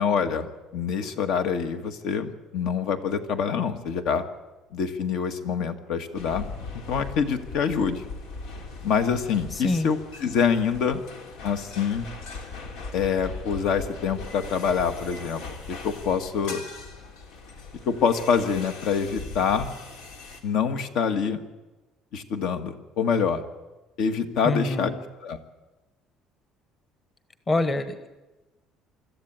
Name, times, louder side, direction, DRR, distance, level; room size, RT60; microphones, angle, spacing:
voice 1, 0.0-4.2 4.7-6.5 6.9-8.1 8.8-11.0 11.4-12.1 12.9-15.4 15.7-16.6 17.9-19.7 20.4-21.4 22.1-23.4 24.0-24.9 25.2-25.4, left 6 dB, 60° left, 8 dB, 1.7 m, -25 dB
sound 1, 6.1-20.4, left 3 dB, 85° left, 3.2 m, -40 dB
voice 2, 24.4-24.9 27.5-28.1, left 2 dB, 20° left, 10 dB, 1.3 m, -25 dB
25.0 x 14.0 x 8.9 m, 1.1 s
cardioid pair, 165°, 0 cm